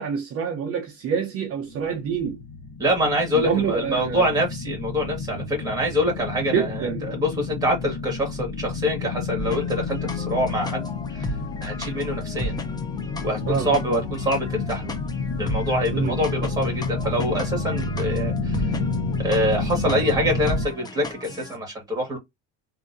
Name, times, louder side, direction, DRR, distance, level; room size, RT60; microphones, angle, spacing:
voice 1, 0.0-2.4 3.3-4.2 5.3-5.4 6.5-7.0 13.5-13.7 15.9-16.1, right 7 dB, 40° right, 0.8 m, -26 dB
sound 1, 1.7-20.7, left 4 dB, 50° left, 1.1 m, -30 dB
voice 2, 2.8-10.9 11.6-12.6 13.2-14.9 15.4-18.6 19.2-22.2, equal, 10° right, 1.6 m, -25 dB
sound 2, 9.4-21.6, left 1 dB, 10° left, 0.4 m, -35 dB
3.6 x 2.8 x 2.6 m
cardioid pair, 170°, 35 cm